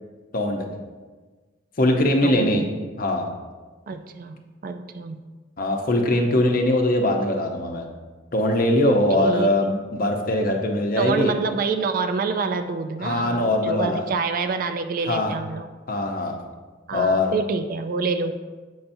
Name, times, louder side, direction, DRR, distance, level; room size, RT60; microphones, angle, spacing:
voice 1, 0.3-0.6 1.8-2.6 3.0-3.3 5.6-7.8 8.3-11.3 13.0-14.1 15.1-15.3 15.9-16.3 16.9-17.3, left 1 dB, 45° left, 3 dB, 0.7 m, -21 dB
voice 2, 2.2-2.7 3.9-5.2 9.2-9.5 11.0-15.7 16.9-18.3, right 4 dB, 45° right, 8 dB, 0.3 m, -27 dB
7.8 x 5.6 x 2.6 m, 1.4 s
head